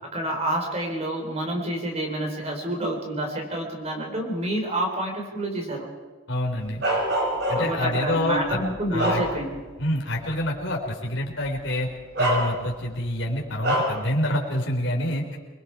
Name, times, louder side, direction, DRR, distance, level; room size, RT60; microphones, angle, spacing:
voice 1, 0.0-5.9 7.5-9.6, right 1 dB, 30° right, 2 dB, 4.3 m, -28 dB
voice 2, 6.3-6.8 7.5-8.6 8.9-9.2 9.8-11.9 12.2-15.4, left 1 dB, 60° left, -1 dB, 4.1 m, -27 dB
Bark, 6.8-7.9 8.5-9.7 10.2-10.3 11.4-11.6 12.1-12.9 13.6-14.0, right 1 dB, 55° right, 4.9 m, -25 dB
28.0 x 20.5 x 4.8 m, 1.3 s
head